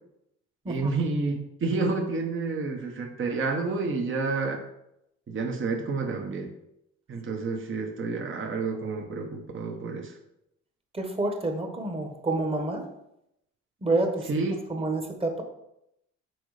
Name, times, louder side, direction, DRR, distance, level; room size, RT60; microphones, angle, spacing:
voice 1, 0.7-4.6 5.3-6.5 7.1-10.1 14.3-14.6, right 3 dB, 40° right, 2 dB, 1.1 m, -29 dB
voice 2, 10.9-12.9 13.8-14.3 14.7-15.4, right 2 dB, 20° right, 4 dB, 1.3 m, -28 dB
6.2 x 3.9 x 4.9 m, 0.82 s
cardioid pair, 90°, 30 cm